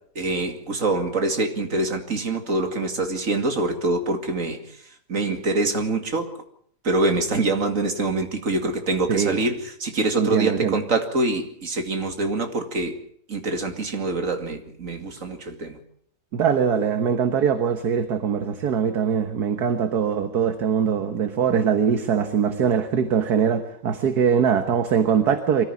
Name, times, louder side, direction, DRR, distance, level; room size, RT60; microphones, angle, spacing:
voice 1, 0.2-4.6 5.1-6.3 6.8-13.0 13.3-15.8, right 2 dB, 50° right, 5 dB, 2.8 m, -25 dB
voice 2, 9.1-9.4 10.2-10.7 16.3-25.6, right 7 dB, 65° right, 8 dB, 1.8 m, -22 dB
24.0 x 14.5 x 8.5 m, 0.64 s
omnidirectional pair, 1.8 m